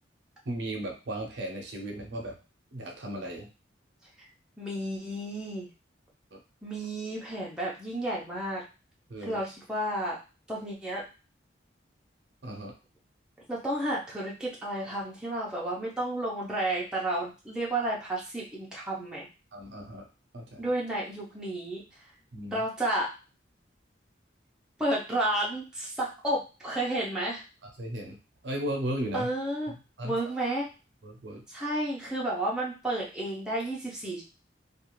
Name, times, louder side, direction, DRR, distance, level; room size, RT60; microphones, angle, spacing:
voice 1, 0.5-2.4 2.7-3.5 6.3-6.4 9.1-9.4 12.4-12.7 19.5-20.1 20.3-20.7 22.3-22.6 27.6-28.2 28.4-29.3 30.0-30.1 31.0-31.4, right 1 dB, 65° right, 2 dB, 0.6 m, -35 dB
voice 2, 4.6-5.7 6.6-8.6 9.3-10.2 10.5-11.0 13.5-19.3 20.6-21.8 22.5-23.1 24.8-27.4 29.1-29.7 30.0-30.7 31.5-34.2, right 1 dB, 5° right, -5 dB, 0.6 m, -31 dB
2.4 x 2.4 x 3.0 m, 0.32 s
head